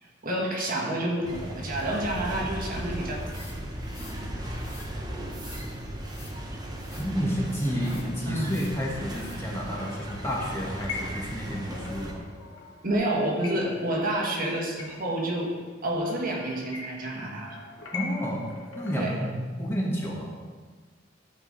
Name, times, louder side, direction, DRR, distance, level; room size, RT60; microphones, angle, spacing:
voice 1, 0.0-3.3 8.3-8.6 12.8-15.5 15.8-17.6 19.0-19.2, right 1 dB, 50° right, -2 dB, 1.5 m, -29 dB
sound 1, 1.2-12.1, right 1 dB, 20° right, 1.0 m, -37 dB
sound 2, 3.2-4.2 4.5-4.9 5.3-5.7 6.0-6.3 6.7-7.1 7.5-8.1 8.4-8.8 9.1-9.4, left 4 dB, 55° left, 2.4 m, -50 dB
voice 2, 7.0-12.2 17.9-20.3, equal, 15° left, -3 dB, 1.4 m, -30 dB
sound 3, 9.6-19.3, left 4 dB, 85° left, 1.5 m, -43 dB
13.0 x 5.0 x 4.0 m, 1.5 s
head